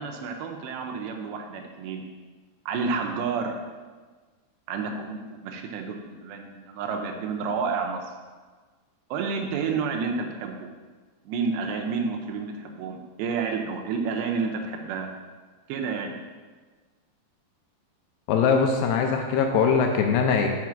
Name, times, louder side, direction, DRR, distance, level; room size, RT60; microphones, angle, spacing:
voice 1, 0.0-2.0 2.7-3.6 4.7-8.0 9.1-10.7 11.3-15.1 15.7-16.1, right 5 dB, 80° right, 3 dB, 2.9 m, -30 dB
voice 2, 18.3-20.5, left 6 dB, 80° left, 3 dB, 2.5 m, -21 dB
6.0 x 5.8 x 6.2 m, 1.4 s
omnidirectional pair, 5.1 m